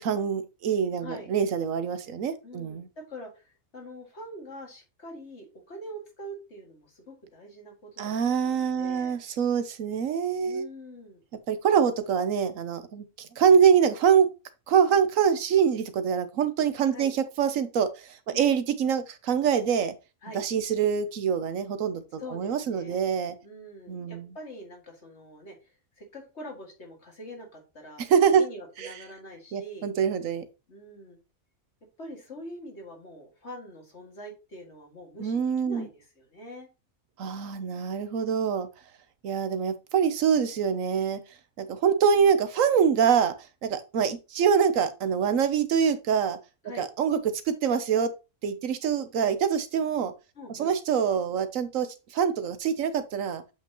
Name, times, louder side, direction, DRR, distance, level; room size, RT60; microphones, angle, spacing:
voice 1, 0.0-2.9 8.0-10.6 11.5-14.3 14.7-19.9 20.3-23.3 23.9-24.3 28.0-28.4 28.8-28.9 29.5-30.4 35.2-35.9 37.2-38.7 39.2-41.2 41.6-43.3 43.6-46.4 46.8-47.2 47.5-48.1 48.4-50.1 50.5-51.9 52.1-53.4, right 7 dB, 85° right, 11 dB, 1.2 m, -25 dB
voice 2, 1.0-1.3 2.4-8.1 8.4-9.2 10.4-11.2 16.9-17.1 18.3-18.5 20.2-20.4 22.2-23.0 23.4-28.1 28.3-29.9 30.7-31.2 32.0-36.7 46.6-46.9 50.4-50.7, equal, 60° left, 0 dB, 2.5 m, -44 dB
7.7 x 5.7 x 3.0 m, 0.28 s
omnidirectional pair, 1.3 m